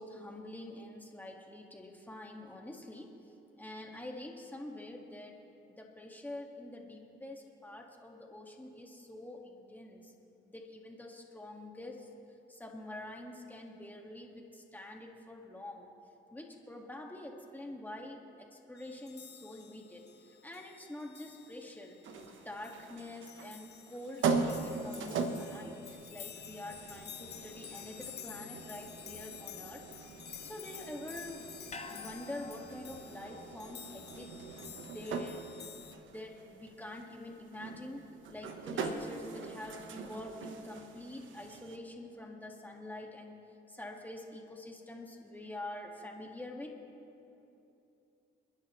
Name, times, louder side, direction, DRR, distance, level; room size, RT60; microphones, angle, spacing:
voice 1, 0.0-3.1 3.6-5.4 5.8-10.1 10.5-12.1 12.5-15.9 16.3-25.8 26.1-29.8 30.4-31.5 31.9-34.3 34.9-35.5 36.0-38.0 38.3-43.4 43.7-46.8, left 1 dB, 10° left, 1 dB, 1.9 m, -46 dB
sound 1, 18.8-36.0, left 9 dB, 55° left, 0.7 m, -51 dB
sound 2, 22.0-41.8, right 4 dB, 75° right, 1.2 m, -41 dB
sound 3, 31.7-36.0 36.4-36.5, left 4 dB, 35° left, 1.0 m, -52 dB
29.5 x 10.5 x 3.2 m, 2.8 s
cardioid pair, 90°, 20 cm